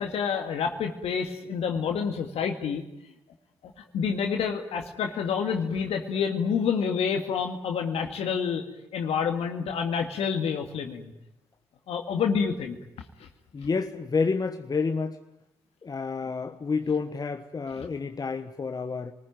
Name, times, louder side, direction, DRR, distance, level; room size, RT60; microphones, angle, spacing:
voice 1, 0.0-2.8 3.9-8.7 8.9-11.1 11.9-12.8 17.8-17.9, left 6 dB, 60° left, 4 dB, 2.1 m, -28 dB
voice 2, 13.5-15.2 15.8-19.1, left 4 dB, 35° left, 7 dB, 1.3 m, -29 dB
28.0 x 20.0 x 9.3 m, 0.87 s
hypercardioid pair, 45°, 12 cm